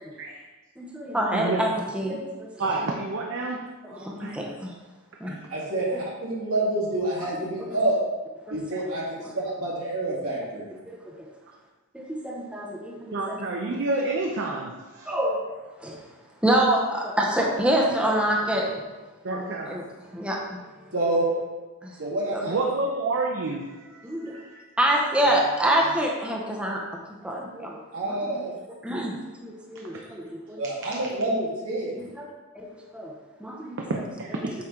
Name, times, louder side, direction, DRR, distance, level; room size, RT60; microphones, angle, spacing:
voice 1, 0.8-2.5 2.8-2.9 3.8-4.7 5.2-5.3 8.5-8.6 11.9-13.2 15.1-15.4 15.8-15.9 16.4-18.7 19.7-19.8 20.1-20.6 21.8-21.9 22.3-22.4 24.0-24.3 24.8-26.8 27.2-27.8 28.0-28.2 28.8-29.1 29.4-30.6 32.2-32.3 32.5-32.7 32.9-33.1 33.4-33.8, right 1 dB, 5° right, -2 dB, 0.7 m, -26 dB
voice 2, 1.3-1.6 2.6-4.4 5.2-5.4 13.1-15.1 19.2-19.8 22.4-24.7 29.8-30.0 33.9-34.5, right 3 dB, 60° right, 0 dB, 0.6 m, -29 dB
voice 3, 5.5-8.0 8.5-9.0 9.3-10.7 20.9-21.3 22.0-22.6 25.2-25.5 27.9-28.5 30.6-32.0, right 2 dB, 75° right, -5 dB, 2.3 m, -27 dB
7.7 x 4.4 x 3.7 m, 1.2 s
head